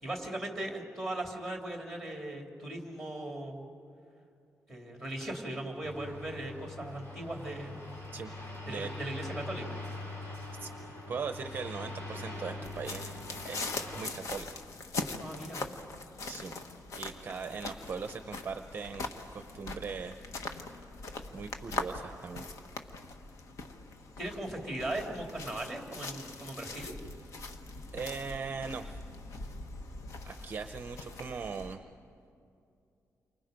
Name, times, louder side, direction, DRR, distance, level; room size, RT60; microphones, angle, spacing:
voice 1, 0.0-3.7 4.7-7.8 8.6-9.7 15.1-15.6 24.2-26.9, right 1 dB, ahead, 1 dB, 3.1 m, -38 dB
sound 1, 5.8-14.0, left 2 dB, 40° left, 4.7 m, -43 dB
voice 2, 11.1-14.5 16.3-16.6 17.0-20.2 21.3-22.5 27.9-29.0 30.2-31.8, right 5 dB, 35° right, 7 dB, 0.7 m, -40 dB
sound 2, 12.6-31.7, left 3 dB, 60° left, 1.3 m, -42 dB
29.0 x 25.0 x 5.2 m, 2.5 s
wide cardioid pair, 170°, 6 cm